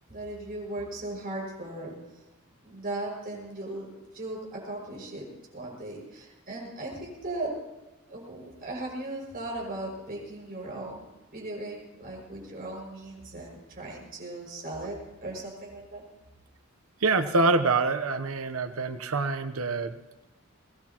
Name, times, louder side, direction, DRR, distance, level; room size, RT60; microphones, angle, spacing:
voice 1, 0.1-2.2 2.6-3.9 4.1-5.3 5.5-7.6 8.1-16.0, right 2 dB, 45° right, -1 dB, 6.4 m, -37 dB
voice 2, 17.0-20.0, right 3 dB, 85° right, 10 dB, 1.0 m, -25 dB
22.5 x 19.0 x 3.0 m, 1.1 s
head